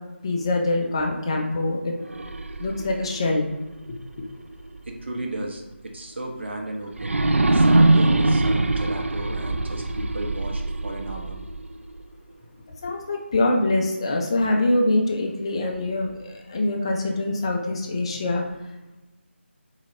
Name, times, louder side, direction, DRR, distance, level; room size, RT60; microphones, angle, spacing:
voice 1, 0.2-1.9 2.6-3.5 12.8-18.4, left 2 dB, 25° left, 0 dB, 0.5 m, -24 dB
sound 1, 2.0-5.0 5.4-5.5 6.9-12.0, right 2 dB, 80° right, 0.4 m, -23 dB
voice 2, 4.8-11.4, right 2 dB, 60° right, 2 dB, 1.0 m, -34 dB
4.1 x 4.0 x 3.1 m, 1.1 s
figure-of-eight pair, 165°, 7 cm